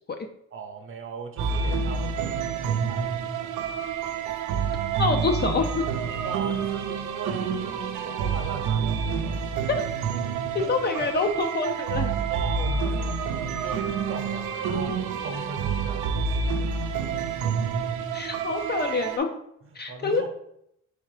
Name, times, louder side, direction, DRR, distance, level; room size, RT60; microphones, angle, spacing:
voice 1, 0.5-3.9 4.2-4.3 6.2-9.6 10.4-10.7 11.0-11.1 12.3-13.2 13.5-16.7 19.9-20.3, right 4 dB, 45° right, 5 dB, 0.8 m, -39 dB
sound 1, 1.4-19.2, right 6 dB, 80° right, 0.5 m, -28 dB
voice 2, 5.0-5.8 9.7-9.8 10.5-12.1 18.1-19.3 19.7-20.3, left 4 dB, 35° left, 5 dB, 0.4 m, -26 dB
3.5 x 3.5 x 3.2 m, 0.75 s
cardioid pair, 90°, 30 cm